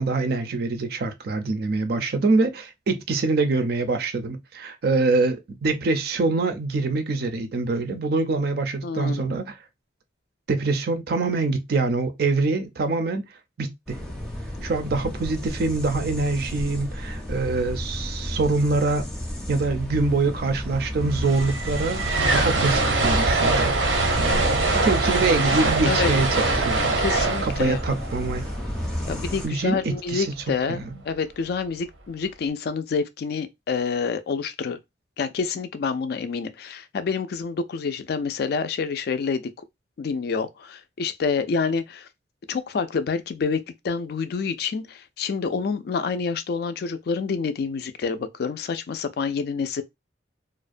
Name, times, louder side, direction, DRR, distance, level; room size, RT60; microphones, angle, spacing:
voice 1, 0.0-9.5 10.5-13.2 13.6-14.0 14.6-19.1 19.5-22.0 22.3-23.7 24.1-24.6 24.8-27.0 27.4-28.5 29.4-30.3 30.7-30.9, right 3 dB, 55° right, 0.4 m, -24 dB
voice 2, 8.8-9.4 25.9-26.1 27.0-27.8 29.1-34.8 35.2-39.5 40.0-42.1 42.5-49.8, left 5 dB, 55° left, 0.3 m, -28 dB
sound 1, 13.9-29.5, equal, 5° left, 0.5 m, -32 dB
sound 2, 20.7-20.8 21.0-29.2, right 3 dB, 90° right, 0.7 m, -23 dB
2.4 x 2.1 x 2.4 m
head